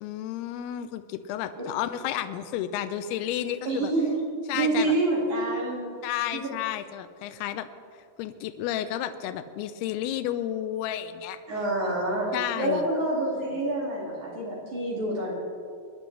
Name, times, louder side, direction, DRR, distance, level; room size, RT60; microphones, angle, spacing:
voice 1, 0.0-3.9 4.5-5.0 6.0-7.7 8.2-11.4 12.3-12.9, left 11 dB, 80° left, 10 dB, 2.4 m, -31 dB
voice 2, 3.6-4.2 4.5-5.8 6.3-6.5 11.5-12.3 12.6-15.4, right 2 dB, 50° right, -5 dB, 3.3 m, -27 dB
25.0 x 10.0 x 3.2 m, 2.2 s
omnidirectional pair, 4.9 m